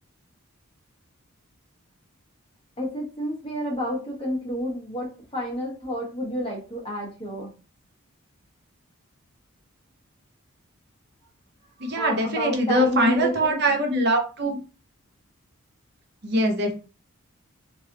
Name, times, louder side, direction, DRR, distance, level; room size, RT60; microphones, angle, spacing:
voice 1, 2.8-7.5 11.8-13.6, equal, 25° left, -2 dB, 1.1 m, -30 dB
voice 2, 11.8-14.6 16.2-16.7, right 1 dB, 50° right, 2 dB, 0.8 m, -22 dB
3.2 x 2.6 x 2.8 m, 0.33 s
head